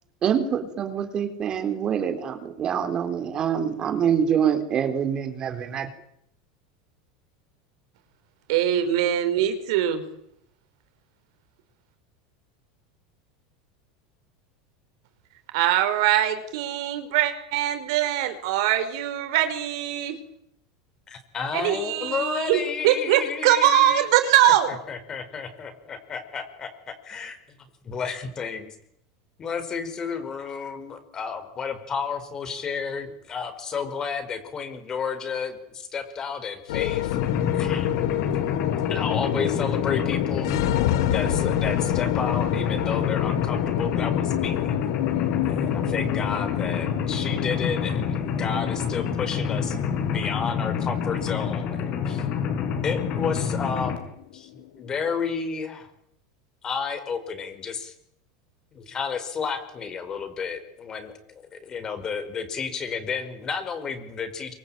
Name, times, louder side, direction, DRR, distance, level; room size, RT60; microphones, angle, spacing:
voice 1, 0.2-5.9, right 8 dB, 30° right, 7 dB, 3.8 m, -25 dB
voice 2, 8.5-10.0 15.5-20.2 21.5-24.7, right 11 dB, 70° right, 8 dB, 5.1 m, -22 dB
voice 3, 21.1-24.0 24.9-27.4 27.8-28.7 29.4-37.2 37.5-38.0 38.9-40.5 41.1-44.7 45.4-52.2 52.8-54.0 54.3-55.9 56.6-57.9 58.7-64.5, left 6 dB, 25° left, 9 dB, 5.1 m, -32 dB
sound 1, 36.7-55.1, left 15 dB, 75° left, 1.2 m, -30 dB
Mechanisms, 37.1-54.0, left 7 dB, 45° left, 5.5 m, -27 dB
26.5 x 24.5 x 9.1 m, 0.74 s
supercardioid pair, 150°, 3 cm